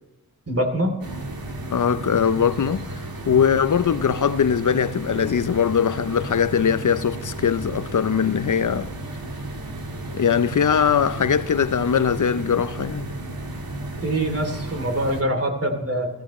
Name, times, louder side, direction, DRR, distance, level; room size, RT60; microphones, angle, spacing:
voice 1, 0.5-0.9 14.0-16.1, right 1 dB, 40° right, 3.1 m, -24 dB
sound 1, 1.0-15.2, right 1 dB, 70° right, 1.9 m, -34 dB
voice 2, 1.7-2.9 3.3-8.9 10.1-13.1, left 7 dB, 55° left, 0.7 m, -21 dB
16.5 x 14.5 x 3.2 m
cardioid pair, 50°, 37 cm